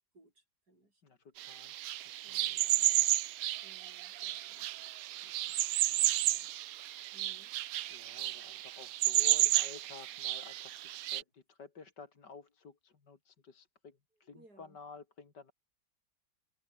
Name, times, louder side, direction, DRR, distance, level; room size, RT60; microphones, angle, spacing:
voice 1, 0.1-1.0 2.2-2.7 3.6-4.7 7.1-7.9 14.2-14.8, right 2 dB, 55° right, 8.3 m, -63 dB
voice 2, 1.0-1.8 2.2-3.0 5.2-6.4 7.9-15.5, left 5 dB, 65° left, 3.2 m, -53 dB
sound 1, 1.4-11.2, right 14 dB, 70° right, 0.8 m, -32 dB
omnidirectional pair, 2.0 m